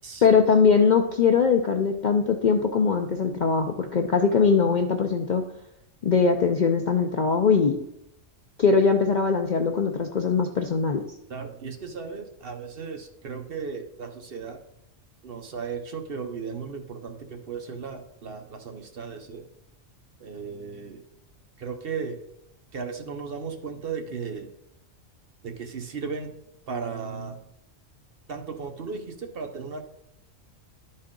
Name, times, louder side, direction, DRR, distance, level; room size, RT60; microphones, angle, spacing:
voice 1, 0.2-5.4 6.0-7.8 8.6-11.0, left 5 dB, 55° left, 4 dB, 0.5 m, -21 dB
voice 2, 11.3-14.6 15.2-19.4 20.2-21.0 21.6-22.2 22.7-24.5 25.4-26.3 26.7-27.4 28.3-29.8, right 5 dB, 50° right, 5 dB, 0.9 m, -35 dB
11.5 x 4.3 x 3.7 m, 0.80 s
omnidirectional pair, 1.3 m